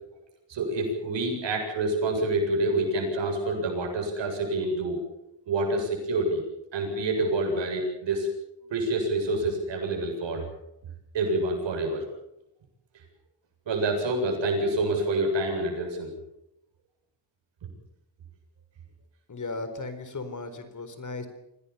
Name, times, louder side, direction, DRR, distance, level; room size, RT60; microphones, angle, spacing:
voice 1, 0.5-5.0 5.5-6.4 6.7-8.3 8.7-10.4 11.1-12.1 13.7-16.1 17.6-17.7, right 2 dB, 85° right, 3 dB, 7.7 m, -27 dB
voice 2, 19.3-21.3, left 3 dB, 45° left, 10 dB, 4.3 m, -36 dB
25.5 x 17.5 x 7.2 m, 0.85 s
cardioid pair, 90°, 43 cm